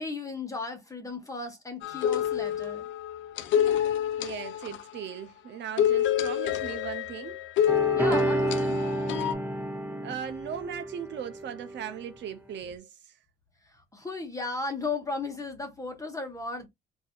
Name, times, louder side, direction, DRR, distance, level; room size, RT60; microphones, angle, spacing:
voice 1, 0.0-2.9 7.9-8.8 13.6-16.7, left 3 dB, 15° left, 1.2 m, -35 dB
sound 1, 1.8-5.1 5.8-9.3, left 10 dB, 75° left, 0.5 m, -28 dB
voice 2, 4.2-7.4 10.0-13.1, right 8 dB, 65° right, 0.6 m, -38 dB
sound 2, 7.7-11.8 12.6-12.7, right 1 dB, 10° right, 1.1 m, -30 dB
4.1 x 2.7 x 2.3 m
cardioid pair, 90°, 20 cm